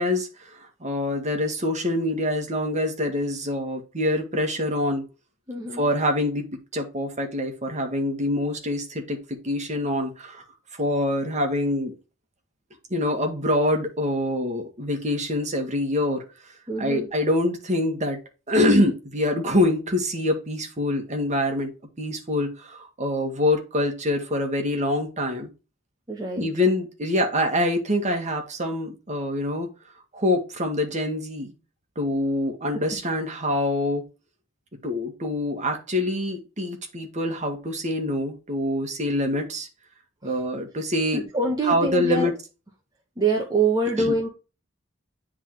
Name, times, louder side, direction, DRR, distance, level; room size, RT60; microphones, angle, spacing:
voice 1, 0.0-5.0 5.8-6.5 6.7-10.4 10.8-11.9 12.9-16.2 16.8-18.2 18.5-21.7 22.0-25.5 26.4-29.7 30.1-31.5 31.9-34.0 34.8-39.7 40.2-41.2 41.7-42.3 44.0-44.1, left 1 dB, 35° right, 3 dB, 1.7 m, -25 dB
voice 2, 5.5-5.9 16.7-17.1 26.1-26.5 40.2-40.4 41.1-42.3 43.2-44.3, right 3 dB, 20° right, -1 dB, 1.1 m, -25 dB
9.9 x 3.7 x 3.1 m, 0.30 s
head